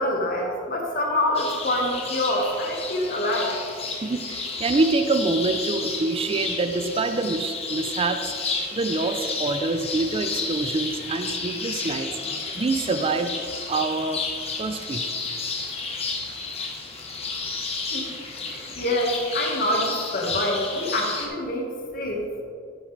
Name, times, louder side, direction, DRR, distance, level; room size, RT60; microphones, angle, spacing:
voice 1, 0.0-3.5 17.9-18.1 18.5-21.6 21.9-22.3, left 1 dB, 50° left, 0 dB, 1.5 m, -26 dB
sound 1, 1.3-21.3, left 4 dB, 30° left, 1.1 m, -32 dB
voice 2, 4.0-8.3 8.7-12.1 12.5-13.3 13.7-14.2 14.6-15.0 18.4-18.6, right 3 dB, 30° right, 8 dB, 0.4 m, -26 dB
10.5 x 7.4 x 3.2 m, 2.3 s
head